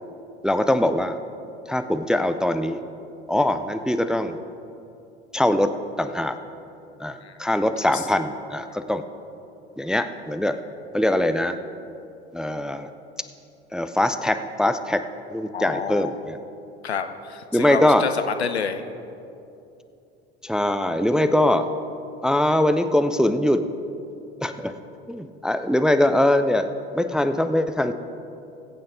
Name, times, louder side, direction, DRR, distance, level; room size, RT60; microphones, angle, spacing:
voice 1, 0.4-1.2 1.7-2.8 3.3-4.4 5.3-5.7 6.0-6.4 7.0-9.0 9.8-10.6 10.9-11.6 12.3-12.9 13.7-15.0 15.3-16.4 17.5-18.0 20.4-21.7 22.2-23.6 24.4-24.8 25.1-27.9, left 1 dB, ahead, 9 dB, 0.4 m, -22 dB
voice 2, 15.5-16.2 16.8-18.8, left 6 dB, 80° left, 9 dB, 0.7 m, -29 dB
20.5 x 8.6 x 3.8 m, 2.8 s
figure-of-eight pair, 65°, 32 cm